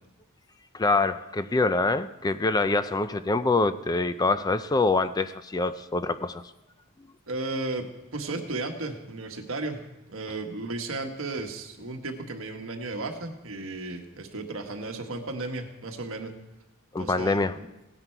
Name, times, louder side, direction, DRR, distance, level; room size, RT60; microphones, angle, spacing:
voice 1, 0.7-6.4 16.9-17.5, left 3 dB, 20° left, 12 dB, 0.4 m, -25 dB
voice 2, 7.3-9.8 10.1-16.3 17.0-17.6, right 2 dB, 65° right, 4 dB, 1.4 m, -34 dB
17.0 x 9.8 x 4.6 m, 1.0 s
head